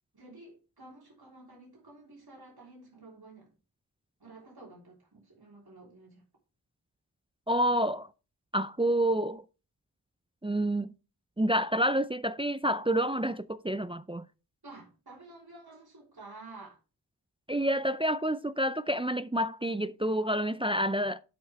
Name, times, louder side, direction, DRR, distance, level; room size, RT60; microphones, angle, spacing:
voice 1, 0.1-3.5 4.2-6.2 14.6-16.8, right 2 dB, 65° right, 3.5 m, -51 dB
voice 2, 7.5-8.1 8.5-9.4 10.4-10.9 11.4-14.2 17.5-21.2, right 1 dB, 15° right, 0.4 m, -28 dB
12.0 x 5.6 x 3.4 m
wide cardioid pair, 45°, 40 cm